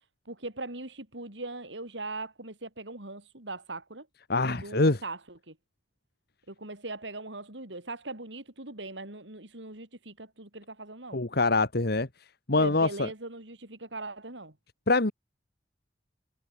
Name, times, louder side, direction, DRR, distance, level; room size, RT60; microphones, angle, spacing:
voice 1, 0.3-4.1 4.4-5.6 6.5-11.2 12.5-14.5, right 2 dB, 80° right, 5.4 m, -40 dB
voice 2, 4.3-5.0 11.1-12.1 12.5-13.1 14.9-15.1, left 2 dB, 60° left, 1.8 m, -24 dB
head